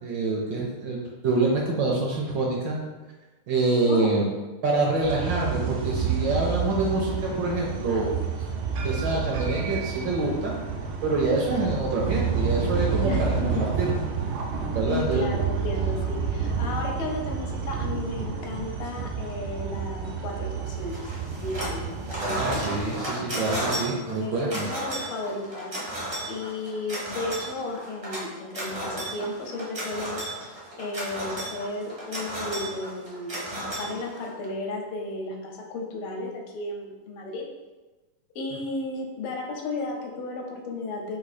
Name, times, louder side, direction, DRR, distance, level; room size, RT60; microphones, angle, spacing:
voice 1, 0.0-1.0 1.2-2.8 3.5-4.3 4.6-8.1 8.8-10.5 11.0-13.3 13.8-13.9 14.7-15.2 22.4-24.6, right 2 dB, 70° right, -2 dB, 1.1 m, -26 dB
sound 1, 5.0-22.9, right 6 dB, 90° right, 1.5 m, -29 dB
voice 2, 13.0-13.6 14.9-21.1 21.4-22.6 24.1-25.7 26.3-30.5 30.8-37.4 38.3-41.2, left 2 dB, 80° left, 1 dB, 1.5 m, -34 dB
sound 2, 20.9-21.8 22.1-34.5, right 1 dB, 40° right, 0.5 m, -33 dB
3.9 x 2.6 x 4.0 m, 1.2 s
omnidirectional pair, 2.4 m